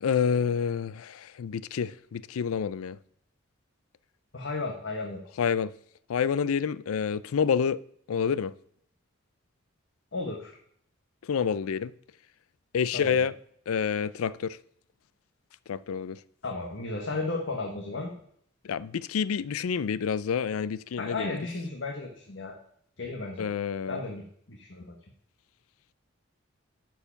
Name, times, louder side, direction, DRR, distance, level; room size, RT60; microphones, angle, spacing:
voice 1, 0.0-3.0 5.4-5.7 6.1-7.8 8.1-8.5 11.2-11.9 12.7-13.3 13.7-14.6 15.7-16.2 18.6-21.4 23.4-24.0, left 7 dB, 90° left, 0.4 m, -28 dB
voice 2, 4.3-5.2 10.1-10.6 12.9-13.2 16.4-18.1 21.0-22.6 23.0-23.5 23.9-24.8, left 3 dB, 60° left, 1.2 m, -34 dB
12.0 x 4.7 x 5.8 m
head